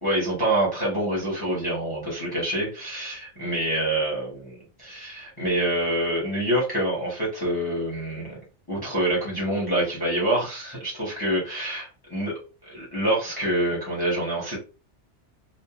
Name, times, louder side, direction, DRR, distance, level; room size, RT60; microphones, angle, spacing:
voice 1, 0.0-8.4 8.7-12.4 12.7-14.6, right 1 dB, 20° left, -5 dB, 0.9 m, -26 dB
2.9 x 2.3 x 2.4 m, 0.34 s
omnidirectional pair, 1.2 m